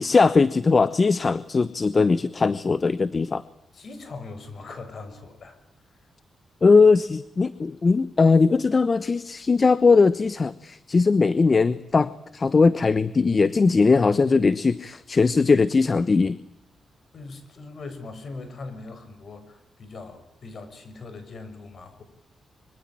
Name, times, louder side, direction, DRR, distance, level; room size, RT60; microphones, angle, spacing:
voice 1, 0.0-3.4 6.6-16.4, left 4 dB, 35° left, 16 dB, 1.1 m, -20 dB
voice 2, 3.7-5.6 5.9-6.0 17.1-22.0, left 3 dB, 55° left, 10 dB, 6.8 m, -40 dB
25.5 x 25.0 x 9.0 m, 0.80 s
cardioid pair, 90°, 0 cm